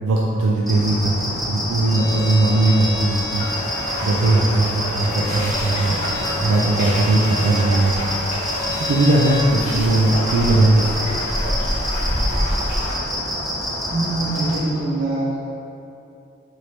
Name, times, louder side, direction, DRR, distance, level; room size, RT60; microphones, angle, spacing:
voice 1, 0.0-3.5 4.0-7.9 8.7-11.0, right 2 dB, 90° right, -3 dB, 0.3 m, -19 dB
sound 1, 0.7-14.6, left 1 dB, ahead, 0.5 m, -27 dB
Bowed string instrument, 1.8-9.5, left 4 dB, 70° left, 1.0 m, -33 dB
sound 2, 3.3-12.9, equal, 35° left, 0.8 m, -28 dB
voice 2, 13.9-15.4, right 2 dB, 65° right, -5 dB, 0.7 m, -23 dB
3.2 x 2.6 x 3.0 m, 2.8 s
head